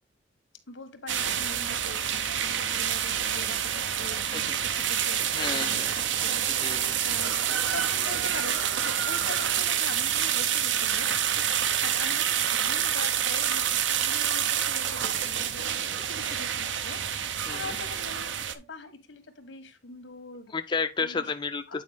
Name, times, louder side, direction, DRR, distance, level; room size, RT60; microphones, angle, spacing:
voice 1, 0.7-5.9 6.2-6.4 6.8-11.1 11.8-20.5 21.0-21.2 21.7-21.8, left 3 dB, 85° left, 1.4 m, -43 dB
sound 1, 1.1-18.5, right 9 dB, 80° right, 0.7 m, -27 dB
voice 2, 5.3-6.0 6.4-7.0 17.5-17.7 20.5-21.8, left 5 dB, 25° left, 0.4 m, -32 dB
8.4 x 4.7 x 3.4 m
head